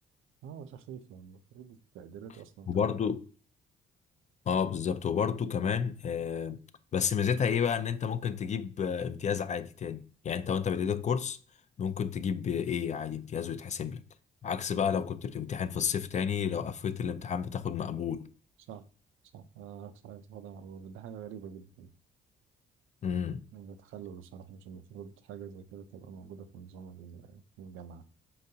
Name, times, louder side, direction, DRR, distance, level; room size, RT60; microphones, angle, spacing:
voice 1, 0.4-2.7 18.7-18.9 19.3-21.9 23.5-28.0, right 7 dB, 85° right, 0.5 m, -46 dB
voice 2, 2.7-3.2 4.5-6.6 6.9-11.4 11.8-14.0 14.4-18.3 23.0-23.4, left 7 dB, 35° left, 0.4 m, -31 dB
4.4 x 3.9 x 2.7 m
cardioid pair, 90°, 20 cm